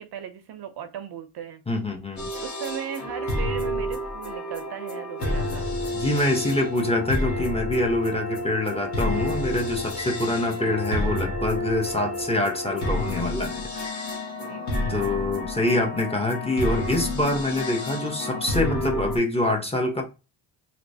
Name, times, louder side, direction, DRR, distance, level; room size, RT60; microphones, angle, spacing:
voice 1, 0.0-1.6 2.4-5.7 10.3-10.6 14.4-15.0, right 9 dB, 55° right, 0.6 m, -37 dB
voice 2, 1.7-2.3 5.9-14.2 14.9-20.0, left 1 dB, 10° left, 1.0 m, -25 dB
sound 1, 2.2-19.2, left 1 dB, 35° left, 1.3 m, -30 dB
3.1 x 3.0 x 2.7 m
cardioid pair, 95°, 47 cm